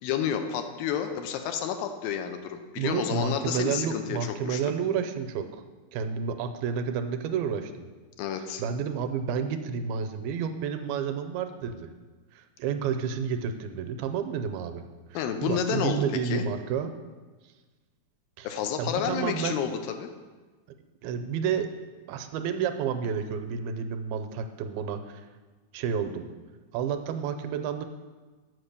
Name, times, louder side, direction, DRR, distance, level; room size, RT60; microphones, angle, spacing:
voice 1, 0.0-4.6 8.2-8.6 15.1-16.4 18.4-20.1, left 8 dB, 80° left, 7 dB, 2.3 m, -30 dB
voice 2, 2.8-5.6 5.9-7.9 8.6-11.9 12.3-14.8 15.1-16.9 18.4-18.5 18.8-19.6 21.0-21.7 22.1-25.2 25.7-26.3 26.7-27.9, right 7 dB, 85° right, 8 dB, 2.4 m, -30 dB
7.9 x 6.0 x 6.7 m, 1.3 s
omnidirectional pair, 4.3 m